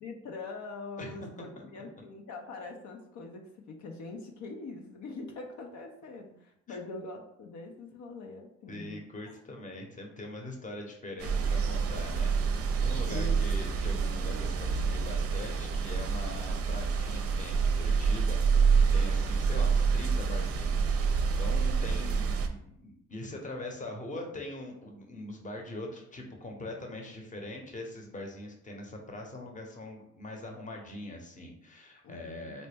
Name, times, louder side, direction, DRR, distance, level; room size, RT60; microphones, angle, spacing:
voice 1, 0.0-9.3 13.1-13.5 32.0-32.6, left 3 dB, 70° left, 2 dB, 0.6 m, -43 dB
voice 2, 1.0-1.3 1.7-1.8 6.7-6.8 8.7-32.7, left 1 dB, 25° left, 2 dB, 0.8 m, -42 dB
sound 1, 11.2-22.5, right 5 dB, 50° right, 0.5 m, -27 dB
4.1 x 2.1 x 3.3 m, 0.76 s
cardioid pair, 90°, 30 cm